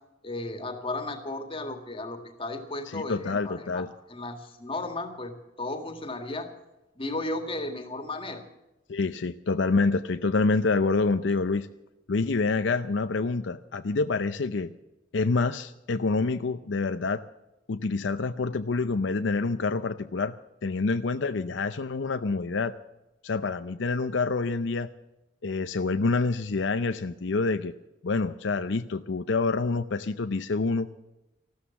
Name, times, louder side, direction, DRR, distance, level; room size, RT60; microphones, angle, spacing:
voice 1, 0.2-5.3 5.6-6.5 7.0-8.4, left 2 dB, 30° left, 7 dB, 1.9 m, -34 dB
voice 2, 2.9-3.9 8.9-11.7 12.1-14.7 15.1-17.2 17.7-20.3 20.6-22.7 23.2-24.9 25.4-27.7 28.0-30.9, left 3 dB, 75° left, 10 dB, 0.6 m, -27 dB
14.5 x 13.0 x 7.1 m, 0.97 s
head